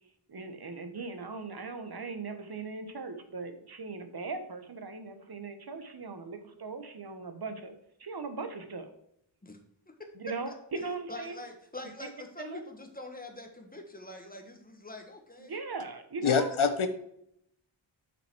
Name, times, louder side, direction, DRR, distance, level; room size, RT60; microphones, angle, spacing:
voice 1, 0.3-7.7 8.0-8.9 10.1-11.3 12.4-12.6 15.4-16.5, right 4 dB, 50° right, 8 dB, 1.2 m, -39 dB
voice 2, 9.9-15.6 16.2-16.6, left 2 dB, 20° left, 4 dB, 1.4 m, -45 dB
voice 3, 16.2-16.9, left 6 dB, 90° left, 9 dB, 1.1 m, -25 dB
6.8 x 5.8 x 4.5 m, 0.73 s
wide cardioid pair, 125°, 47 cm